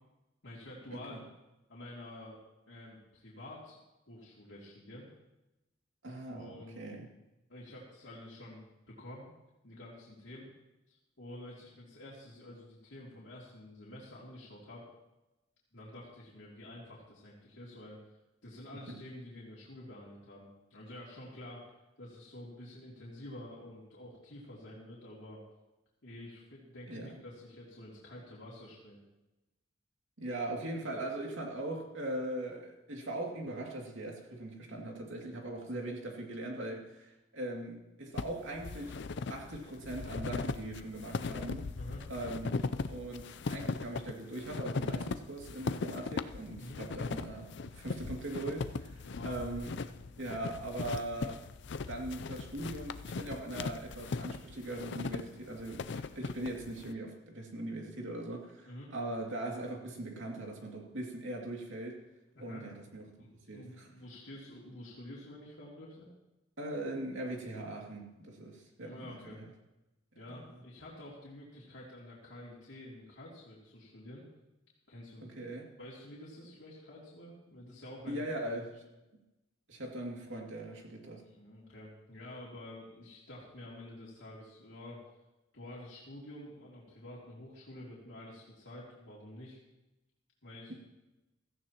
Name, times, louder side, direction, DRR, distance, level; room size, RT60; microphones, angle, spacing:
voice 1, 0.4-1.2 1.7-2.4 2.7-3.8 4.1-5.1 6.3-6.8 7.5-8.6 9.0-9.3 9.6-10.5 10.9-14.9 15.7-18.0 18.4-21.6 22.0-25.4 26.0-29.0 35.7-35.8 41.8-42.1 46.6-46.8 49.0-49.3 58.7-58.9 62.3-62.6 63.2-66.1 68.8-69.4 70.2-74.2 74.9-75.4 75.8-78.2 81.2-85.0 85.5-89.6 90.4-90.7, left 1 dB, 80° left, -6 dB, 2.7 m, -49 dB
voice 2, 6.0-7.1 18.9-19.0 26.9-27.1 30.2-39.0 39.3-41.7 42.1-49.7 50.2-51.4 51.9-62.0 62.4-63.1 63.5-63.9 66.6-69.1 69.4-69.5 70.3-70.6 75.4-75.7 78.1-78.8 79.7-81.2, right 1 dB, 90° right, 0 dB, 2.4 m, -40 dB
sound 1, 38.2-56.9, left 4 dB, 65° left, 0.5 m, -39 dB
16.5 x 14.5 x 3.0 m, 0.99 s
head